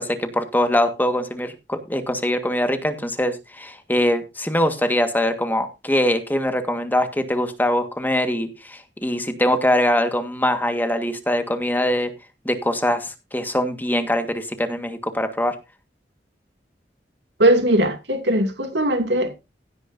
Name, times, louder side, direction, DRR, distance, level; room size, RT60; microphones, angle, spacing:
voice 1, 0.0-12.1 12.4-15.5, left 1 dB, 10° left, 1.7 m, -22 dB
voice 2, 17.4-19.3, right 1 dB, 80° right, 2.6 m, -19 dB
16.5 x 9.8 x 2.7 m
head